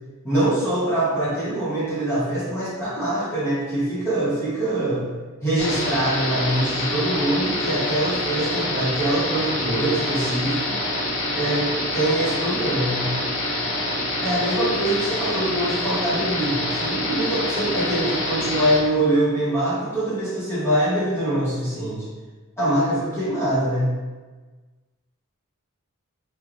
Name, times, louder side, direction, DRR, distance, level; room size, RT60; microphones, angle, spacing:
voice 1, 0.2-5.0 5.4-10.8 11.3-13.1 14.2-22.0 22.6-23.9, right 1 dB, 10° left, -10 dB, 0.9 m, -24 dB
sound 1, 5.6-18.8, left 1 dB, 60° left, 0.8 m, -26 dB
4.2 x 3.3 x 2.4 m, 1.3 s
head